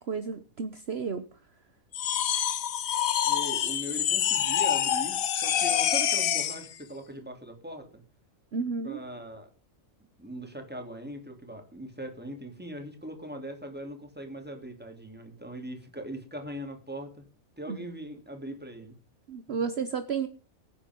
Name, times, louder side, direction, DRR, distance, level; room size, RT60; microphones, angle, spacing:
voice 1, 0.1-1.4 8.5-9.0 17.7-17.9 19.3-20.3, right 5 dB, 50° right, 10 dB, 1.2 m, -32 dB
sound 1, 1.9-6.7, left 10 dB, 75° left, 1.3 m, -26 dB
voice 2, 3.2-8.0 8.8-9.5 10.2-17.2 17.6-19.0 19.5-19.6, equal, 5° right, 4 dB, 3.1 m, -40 dB
22.0 x 9.7 x 3.7 m, 0.37 s
omnidirectional pair, 1.4 m